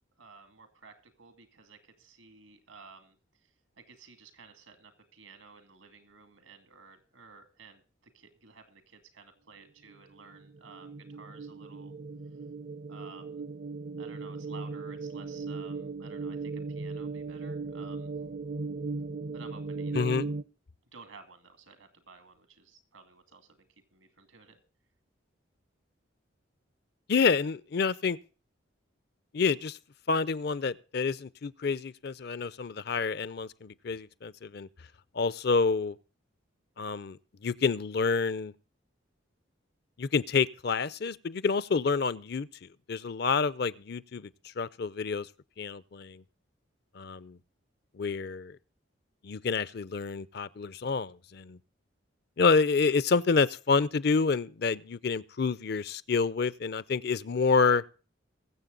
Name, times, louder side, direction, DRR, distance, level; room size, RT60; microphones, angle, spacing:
voice 1, 0.2-3.2 3.8-7.8 8.1-11.9 12.9-13.4 14.0-18.1 19.3-20.1 20.9-24.6, right 4 dB, 85° right, 2.3 m, -53 dB
sound 1, 9.9-20.4, right 4 dB, 50° right, 0.6 m, -38 dB
voice 2, 19.9-20.3 27.1-28.2 29.3-29.8 30.1-34.7 35.2-36.0 36.8-37.2 37.4-38.5 40.0-42.5 42.9-44.3 44.6-45.3 45.6-46.2 47.0-47.4 48.0-48.5 49.2-51.6 52.4-57.8, left 4 dB, 55° left, 0.5 m, -28 dB
22.0 x 7.6 x 3.8 m
head